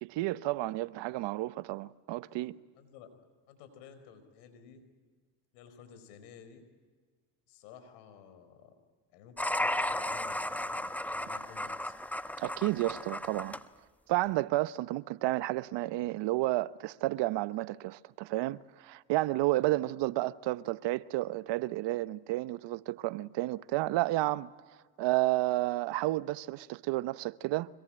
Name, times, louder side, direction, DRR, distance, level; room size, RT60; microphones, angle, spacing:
voice 1, 0.0-2.6 12.4-13.6 14.1-24.6 25.0-27.7, right 18 dB, 65° right, 0.9 m, -31 dB
voice 2, 2.7-3.1 3.5-4.8 5.5-6.6 7.5-8.7 9.1-11.9, left 7 dB, 85° left, 4.7 m, -53 dB
sound 1, 9.4-13.6, left 1 dB, 5° left, 1.0 m, -34 dB
25.5 x 22.0 x 8.8 m
supercardioid pair, 70°, 45 cm